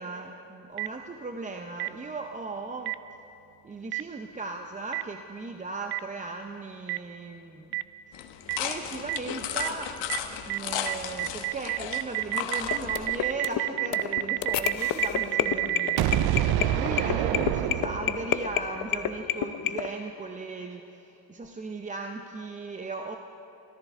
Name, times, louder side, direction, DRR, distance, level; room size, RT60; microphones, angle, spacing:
voice 1, 0.0-3.0 3.6-7.7 8.6-10.1 10.4-16.2 16.7-23.2, right 3 dB, 20° right, 4 dB, 0.6 m, -37 dB
Boom, 0.8-0.9 1.8-1.9 2.9-3.0 3.9-4.0 4.9-5.0 5.9-6.0 6.9-7.0 7.7-7.8 8.5-8.6 9.1-9.2 9.6-9.7 10.1-10.2 10.5-10.6 10.9-18.4, right 15 dB, 65° right, 0.5 m, -27 dB
sound 1, 8.1-13.3, left 9 dB, 85° left, 1.1 m, -35 dB
sound 2, 12.6-19.9, left 10 dB, 55° left, 0.7 m, -30 dB
24.5 x 14.0 x 3.6 m, 2.9 s
cardioid pair, 125°, 41 cm